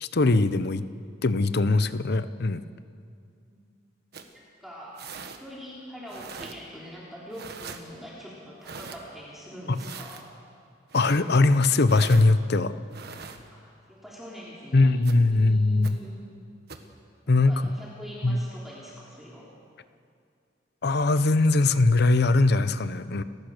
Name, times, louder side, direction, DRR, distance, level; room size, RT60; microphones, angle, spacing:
voice 1, 0.0-0.8 1.2-2.6 9.7-9.8 10.9-12.7 14.7-16.0 17.3-17.6 18.2-18.4 20.8-23.2, left 3 dB, 55° left, 13 dB, 0.8 m, -21 dB
sound 1, 4.1-4.3 5.0-5.4 6.1-6.6 7.3-7.8 8.6-9.0 9.7-10.2 10.9-11.2 11.9-12.3 12.9-13.4 15.0-15.1 15.8-15.9 16.7-16.9, right 5 dB, 55° right, 1.5 m, -41 dB
voice 2, 4.6-5.0 5.4-10.3 13.5-15.0 15.3-16.1 17.2-19.5, equal, ahead, -6 dB, 3.4 m, -43 dB
29.5 x 14.5 x 6.6 m, 2.3 s
head